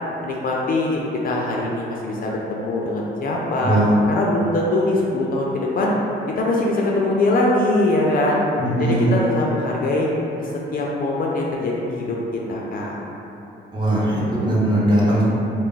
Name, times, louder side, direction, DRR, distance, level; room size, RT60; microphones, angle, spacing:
voice 1, 0.2-3.8 4.1-5.9 6.3-8.4 8.8-10.1 10.4-13.0, left 2 dB, 45° left, -3 dB, 0.4 m, -22 dB
voice 2, 3.6-4.0 8.5-9.2 13.7-15.2, right 1 dB, 25° right, -8 dB, 0.8 m, -19 dB
2.2 x 2.0 x 3.7 m, 3.0 s
cardioid pair, 90°, 20 cm